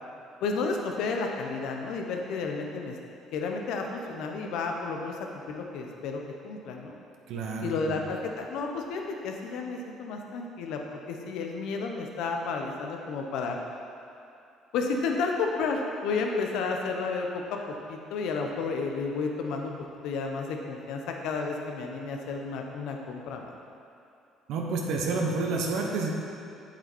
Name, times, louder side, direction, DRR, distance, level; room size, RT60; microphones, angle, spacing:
voice 1, 0.4-3.0 3.3-5.2 5.5-7.0 7.6-13.6 14.7-19.7 20.0-23.5, left 4 dB, 75° left, 2 dB, 1.0 m, -32 dB
voice 2, 7.3-8.0 24.5-26.1, right 3 dB, 70° right, 0 dB, 1.3 m, -29 dB
8.2 x 7.4 x 4.5 m, 2.7 s
supercardioid pair, 65°, 0 cm